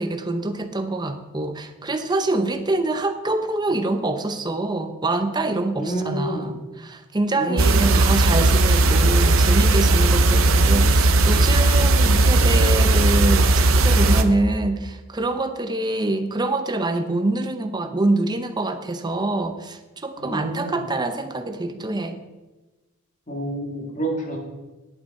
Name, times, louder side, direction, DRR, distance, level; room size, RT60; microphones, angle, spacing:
voice 1, 0.0-22.2, right 2 dB, 20° right, 8 dB, 0.7 m, -25 dB
voice 2, 5.8-6.5 7.4-8.1 20.2-20.8 23.3-24.4, right 1 dB, 35° left, -1 dB, 2.1 m, -29 dB
sound 1, 7.6-14.2, right 2 dB, 65° right, 0.7 m, -17 dB
11.0 x 7.6 x 4.2 m, 1.1 s
head